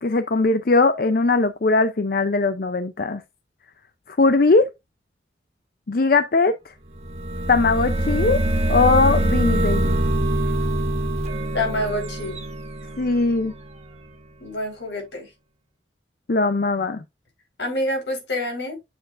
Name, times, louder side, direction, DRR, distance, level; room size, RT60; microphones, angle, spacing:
voice 1, 0.0-3.2 4.1-4.7 5.9-6.7 7.5-8.4 8.7-10.0 13.0-13.5 16.3-17.0, left 3 dB, 50° left, 0.5 m, -20 dB
sound 1, 6.9-13.7, right 1 dB, 35° right, 1.7 m, -24 dB
voice 2, 11.5-12.4 14.4-15.3 17.6-18.8, left 1 dB, 75° left, 4.5 m, -27 dB
9.0 x 6.9 x 2.5 m
head